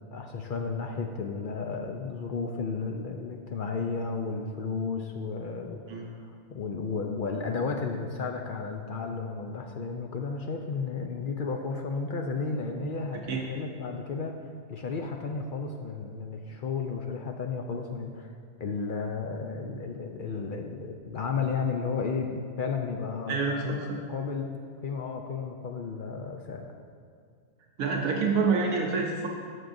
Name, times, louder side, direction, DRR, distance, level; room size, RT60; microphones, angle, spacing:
voice 1, 0.1-14.4 14.7-18.3 18.6-24.5 24.8-26.7, left 4 dB, 70° left, 3 dB, 0.4 m, -33 dB
voice 2, 23.3-24.0 27.8-29.3, right 4 dB, 80° right, 0 dB, 1.2 m, -27 dB
14.0 x 6.2 x 2.6 m, 2.2 s
omnidirectional pair, 1.4 m